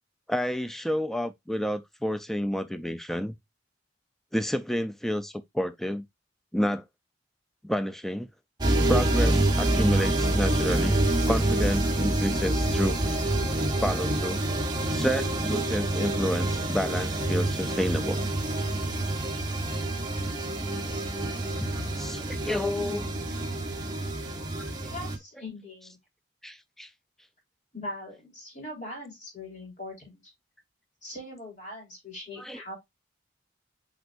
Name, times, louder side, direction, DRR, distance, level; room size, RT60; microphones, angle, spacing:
voice 1, 0.3-3.4 4.3-6.0 6.5-6.8 7.6-8.3 8.9-13.0 13.8-14.4 14.9-18.2 21.5-23.1 24.6-24.9 26.4-26.9 32.4-32.6, equal, ahead, 0.3 m, -30 dB
sound 1, 8.6-25.2, right 1 dB, 25° right, 1.3 m, -27 dB
voice 2, 24.9-26.0 27.7-30.2 31.0-32.8, left 1 dB, 40° left, 3.9 m, -41 dB
7.9 x 5.0 x 2.5 m
head